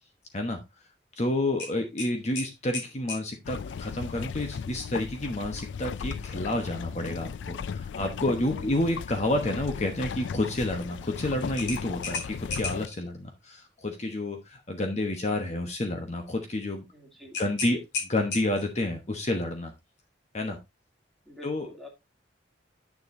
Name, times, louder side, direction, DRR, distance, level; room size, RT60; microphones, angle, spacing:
voice 1, 1.2-16.8 17.4-19.7 20.3-20.6 21.4-21.7, left 1 dB, 40° left, 4 dB, 1.1 m, -30 dB
sound 1, 1.6-3.3 5.9-6.1 6.5-6.6 11.6-13.0 17.3-18.8, left 4 dB, 65° left, 4.0 m, -35 dB
sound 2, 3.4-12.9, left 6 dB, 80° left, 0.4 m, -36 dB
voice 2, 8.4-9.0 16.9-17.4 21.2-21.9, left 1 dB, ahead, 0 dB, 2.5 m, -47 dB
9.6 x 6.8 x 2.6 m, 0.22 s
head